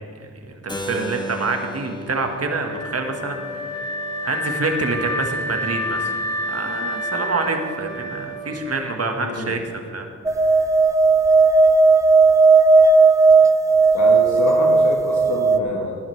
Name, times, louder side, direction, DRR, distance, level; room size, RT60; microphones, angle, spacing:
voice 1, 0.2-3.8 4.2-6.1 6.5-10.6, right 3 dB, 55° right, 4 dB, 1.6 m, -27 dB
Keyboard (musical), 0.7-6.5, right 1 dB, 15° left, 1.3 m, -37 dB
Wind instrument woodwind instrument, 2.4-9.4, left 1 dB, 60° left, 2.1 m, -29 dB
voice 2, 9.2-9.5 13.9-16.0, left 3 dB, 80° left, -1 dB, 1.3 m, -26 dB
sound 1, 10.3-15.6, right 3 dB, 10° right, 0.5 m, -14 dB
17.5 x 10.0 x 3.3 m, 2.2 s
cardioid pair, 65°, 30 cm